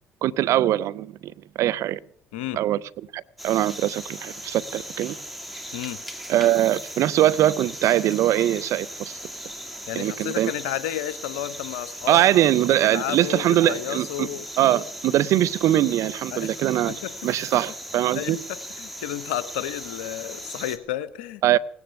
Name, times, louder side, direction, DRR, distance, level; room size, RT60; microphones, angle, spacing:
voice 1, 0.2-2.0 2.5-2.8 3.1-5.2 6.3-9.2 10.0-10.5 12.1-14.3 14.6-16.9 17.2-18.4 21.4-21.6, right 13 dB, 65° right, 0.6 m, -22 dB
sound 1, 3.4-20.8, equal, ahead, 2.6 m, -38 dB
voice 2, 9.9-12.2 12.8-14.4 16.3-16.5 16.9-17.1 17.5-17.6 18.1-21.4, left 13 dB, 85° left, 0.8 m, -32 dB
18.0 x 9.7 x 6.8 m
hypercardioid pair, 60°, 6 cm